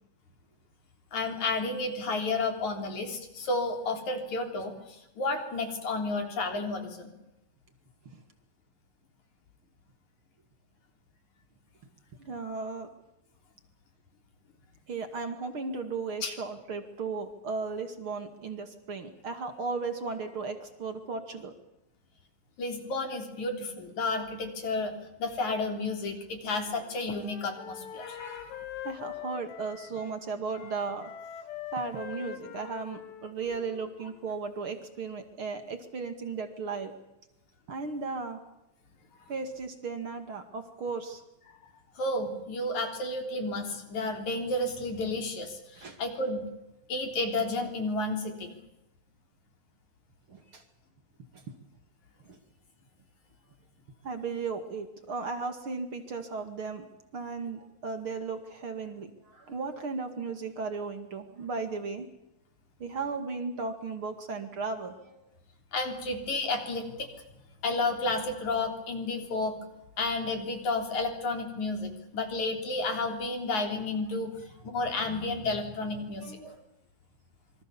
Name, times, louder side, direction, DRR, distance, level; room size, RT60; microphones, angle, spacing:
voice 1, 1.1-7.1 16.2-16.3 22.6-24.9 25.2-28.6 42.0-46.5 46.9-48.5 65.7-67.1 67.6-69.6 70.0-76.3, left 2 dB, 40° left, 5 dB, 4.4 m, -31 dB
voice 2, 12.2-12.9 14.9-21.5 28.8-31.1 31.7-36.9 37.7-38.4 39.3-41.2 45.8-46.0 50.3-50.6 52.3-52.4 54.0-56.9 57.1-62.1 62.8-65.0 76.1-76.6, right 4 dB, 40° right, 7 dB, 1.9 m, -36 dB
Wind instrument woodwind instrument, 26.6-30.2 30.5-34.3, left 11 dB, 70° left, 3.7 m, -43 dB
26.5 x 24.5 x 7.2 m, 0.91 s
omnidirectional pair, 5.5 m